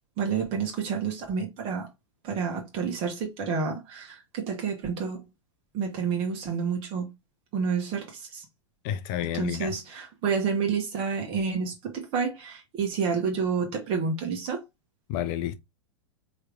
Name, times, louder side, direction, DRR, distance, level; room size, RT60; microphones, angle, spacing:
voice 1, 0.2-1.9 2.2-5.2 5.7-7.1 7.5-8.4 9.3-14.6, right 6 dB, 35° right, 1.5 m, -29 dB
voice 2, 8.8-9.7 15.1-15.6, left 11 dB, 40° left, 0.5 m, -30 dB
4.6 x 3.2 x 3.4 m
figure-of-eight pair, 95°, 15 cm